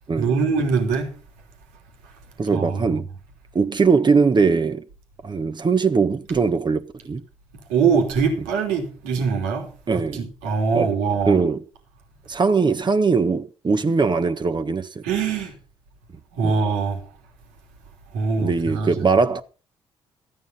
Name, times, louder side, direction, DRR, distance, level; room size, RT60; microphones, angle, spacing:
voice 1, 0.2-1.1 2.5-2.8 7.7-11.4 15.0-15.5 16.3-17.0 18.1-19.1, right 5 dB, 80° right, 3.1 m, -23 dB
voice 2, 2.4-3.1 3.5-4.8 5.2-7.2 9.9-10.3 10.7-10.9 11.3-11.6 12.3-15.0 16.4-16.6 18.4-19.4, right 4 dB, 35° right, 1.5 m, -20 dB
14.5 x 9.3 x 5.6 m
hypercardioid pair, 45°, 13 cm